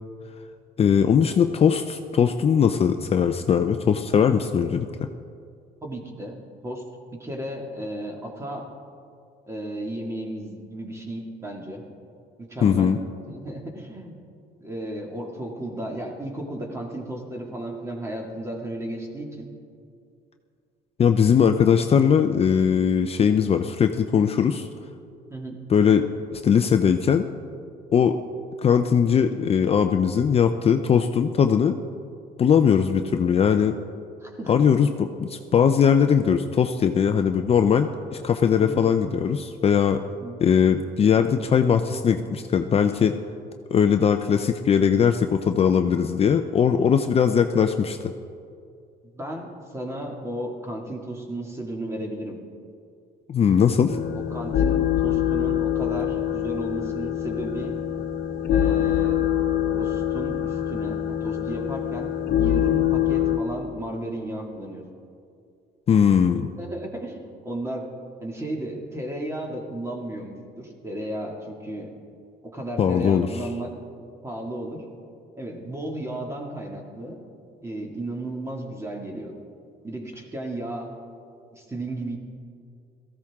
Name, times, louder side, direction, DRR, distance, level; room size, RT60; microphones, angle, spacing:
voice 1, 0.8-5.1 12.6-13.0 21.0-24.7 25.7-27.3 27.9-28.2 28.6-31.8 32.4-33.7 34.5-34.9 35.2-40.0 40.4-43.1 43.7-48.0 53.3-54.0 65.9-66.5 72.8-73.3, left 7 dB, 35° left, 7 dB, 0.5 m, -20 dB
voice 2, 5.8-6.4 6.6-6.8 7.1-8.7 9.5-11.8 12.4-12.9 13.3-14.2 14.6-19.5 25.3-25.6 34.2-34.7 38.6-38.9 40.2-40.4 49.0-52.4 54.1-57.8 58.5-59.2 59.7-64.8 66.6-67.9 68.2-71.9 72.4-73.7 74.2-74.9 75.4-77.2 77.6-79.4 79.8-81.0 81.5-82.2, right 1 dB, 15° right, 1 dB, 2.2 m, -34 dB
sound 1, 53.9-63.4, left 11 dB, 60° left, 1.1 m, -24 dB
17.5 x 14.5 x 3.6 m, 2.4 s
cardioid pair, 110°, 17 cm